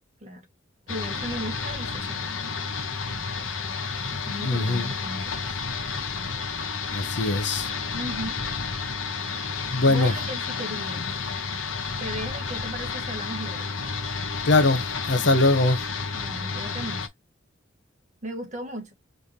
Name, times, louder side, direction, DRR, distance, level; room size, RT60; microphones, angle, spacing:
sound 1, 0.9-17.1, left 5 dB, 85° left, 1.1 m, -31 dB
voice 1, 0.9-2.5 3.1-3.2 4.3-5.6 7.9-8.4 9.5-11.0 12.0-13.7 16.1-17.1 18.2-18.9, right 1 dB, 35° right, 1.8 m, -36 dB
voice 2, 4.0-4.9 6.9-7.7 9.7-10.1 14.4-15.8, left 2 dB, 60° left, 0.9 m, -22 dB
5.2 x 3.3 x 2.8 m
head